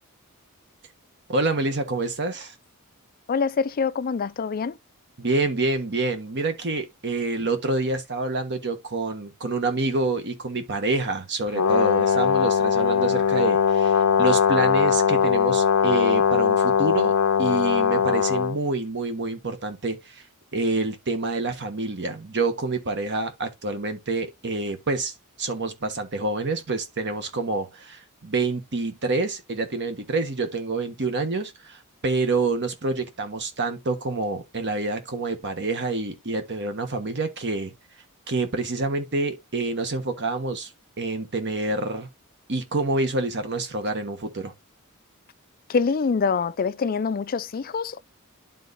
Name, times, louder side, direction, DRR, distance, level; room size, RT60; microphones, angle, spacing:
voice 1, 1.3-2.5 5.2-20.2 20.5-37.7 38.3-40.7 41.0-42.1 42.5-44.5, right 3 dB, 55° right, 1.3 m, -27 dB
voice 2, 3.3-4.8 45.7-48.0, left 5 dB, 40° left, 0.4 m, -25 dB
Brass instrument, 11.5-18.6, left 7 dB, 90° left, 0.6 m, -20 dB
11.5 x 3.9 x 2.6 m
head